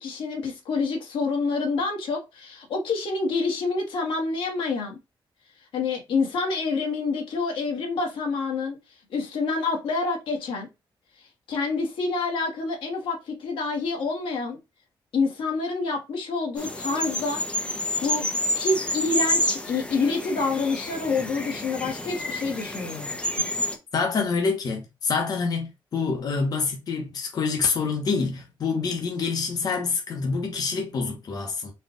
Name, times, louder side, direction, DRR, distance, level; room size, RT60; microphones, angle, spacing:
voice 1, 0.0-5.0 5.7-8.8 9.1-10.7 11.2-14.6 15.1-17.4 18.0-18.2 18.5-23.2, left 4 dB, 85° left, 1.7 m, -27 dB
sound 1, 16.6-23.8, left 1 dB, 10° left, 0.7 m, -29 dB
voice 2, 23.9-31.7, left 4 dB, 50° left, 1.1 m, -26 dB
4.3 x 2.5 x 3.8 m
wide cardioid pair, 150°, 9 cm